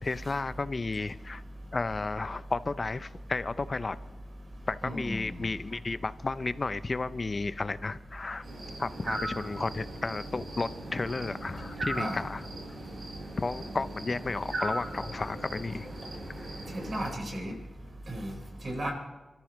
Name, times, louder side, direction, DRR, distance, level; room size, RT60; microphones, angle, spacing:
voice 1, 0.0-1.4 1.7-4.0 4.7-8.5 8.8-12.5 13.4-15.9, left 3 dB, 40° left, 14 dB, 0.6 m, -33 dB
voice 2, 4.8-5.3 11.9-12.2 16.7-17.5 18.1-18.3 18.6-18.9, right 1 dB, 50° right, 1 dB, 4.6 m, -34 dB
sound 1, 8.4-17.1, right 1 dB, 85° right, 4.3 m, -39 dB
28.0 x 14.0 x 3.1 m, 1.2 s
wide cardioid pair, 95°, 0 cm